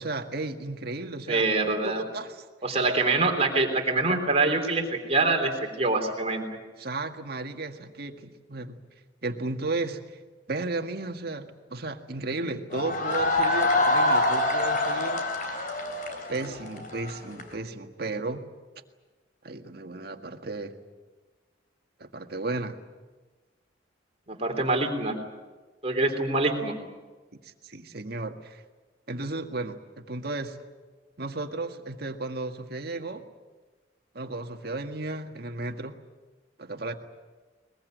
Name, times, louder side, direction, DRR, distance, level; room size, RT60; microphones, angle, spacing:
voice 1, 0.0-1.5 1.8-2.4 6.8-8.8 9.2-10.2 10.5-15.3 16.3-18.4 19.4-20.8 22.0-22.8 27.4-28.6 29.1-30.6 31.2-33.2 34.1-36.0 36.6-36.9, right 2 dB, 60° right, 5 dB, 1.8 m, -34 dB
voice 2, 1.3-2.0 2.6-6.5 24.3-25.2 25.8-26.8, right 3 dB, 35° right, 3 dB, 3.5 m, -25 dB
sound 1, 12.7-17.5, left 2 dB, 50° left, 3.3 m, -25 dB
22.0 x 21.5 x 9.3 m, 1.3 s
head